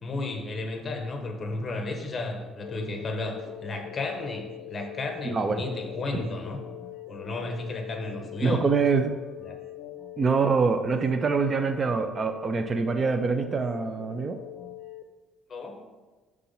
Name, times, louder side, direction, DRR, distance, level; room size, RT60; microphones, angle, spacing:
voice 1, 0.0-6.6 7.1-8.7 9.4-9.6 15.5-15.8, left 2 dB, 30° left, 3 dB, 1.1 m, -33 dB
sound 1, 2.6-15.0, left 11 dB, 75° left, 0.5 m, -42 dB
voice 2, 5.2-5.6 8.4-9.2 10.2-14.4, right 5 dB, 30° right, 8 dB, 0.4 m, -25 dB
5.7 x 3.6 x 5.5 m, 1.2 s
cardioid pair, 115°, 0 cm